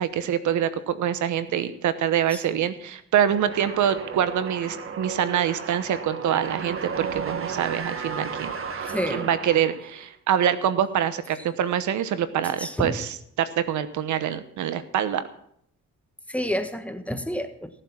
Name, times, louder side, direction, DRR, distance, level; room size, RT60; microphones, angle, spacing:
voice 1, 0.0-15.2, right 9 dB, 75° right, 13 dB, 1.0 m, -25 dB
sound 1, 3.3-10.0, right 5 dB, 45° right, 1.5 m, -34 dB
voice 2, 8.9-9.3 12.6-13.0 16.3-17.7, equal, 5° left, 7 dB, 1.4 m, -29 dB
16.5 x 7.8 x 6.0 m, 0.70 s
cardioid pair, 90°, 30 cm